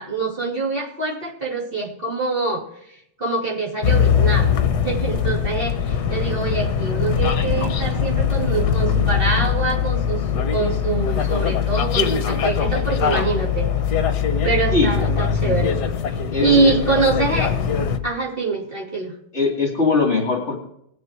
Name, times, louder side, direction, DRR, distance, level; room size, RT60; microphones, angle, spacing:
voice 1, 0.0-4.5 4.8-13.7 14.4-15.7 16.1-16.2 16.4-17.5 18.0-19.1, right 3 dB, 25° right, -4 dB, 3.4 m, -24 dB
sound 1, 3.8-18.0, left 7 dB, 60° left, 1.6 m, -21 dB
voice 2, 16.3-16.8 19.3-20.6, left 4 dB, 35° left, 0 dB, 2.9 m, -20 dB
20.5 x 6.8 x 4.7 m, 0.73 s
omnidirectional pair, 2.2 m